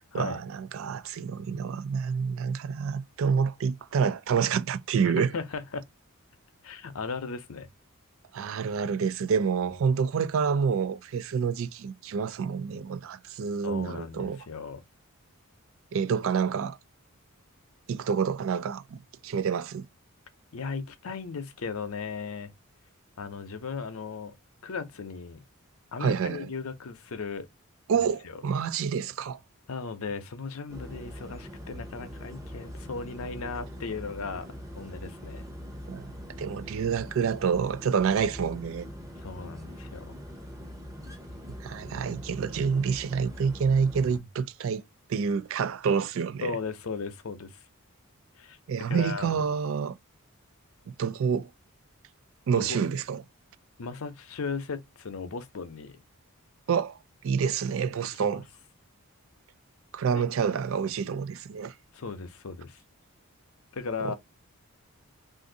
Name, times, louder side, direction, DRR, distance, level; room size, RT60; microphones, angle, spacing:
voice 1, 0.1-5.3 8.3-14.4 15.9-16.8 17.9-19.9 26.0-26.5 27.9-29.4 35.9-36.1 36.4-38.9 41.6-46.6 48.7-50.0 51.0-51.5 52.5-53.2 56.7-57.0 57.2-58.4 59.9-61.7 64.0-64.1, right 6 dB, 60° right, 0.3 m, -28 dB
voice 2, 5.0-5.9 6.6-7.7 13.6-14.8 20.5-22.5 23.2-24.3 24.6-25.4 25.9-27.5 27.9-28.4 29.7-35.5 39.2-40.1 44.1-44.2 46.4-47.6 48.4-48.6 48.9-49.4 52.6-52.8 53.8-56.0 58.1-58.4 60.1-60.2 61.9-62.8 63.7-64.1, left 4 dB, 70° left, 0.6 m, -36 dB
sound 1, 30.7-44.2, equal, 15° right, 0.8 m, -42 dB
2.6 x 2.5 x 3.7 m
head